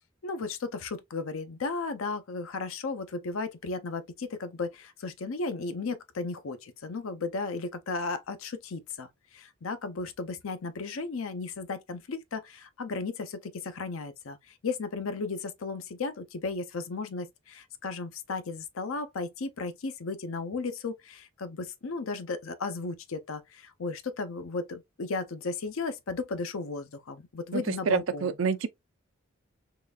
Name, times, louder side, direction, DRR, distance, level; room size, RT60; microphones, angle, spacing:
voice 1, 0.2-28.3, left 3 dB, 75° left, 0.6 m, -35 dB
voice 2, 27.5-28.7, right 5 dB, 70° right, 0.4 m, -28 dB
3.8 x 3.2 x 2.3 m
head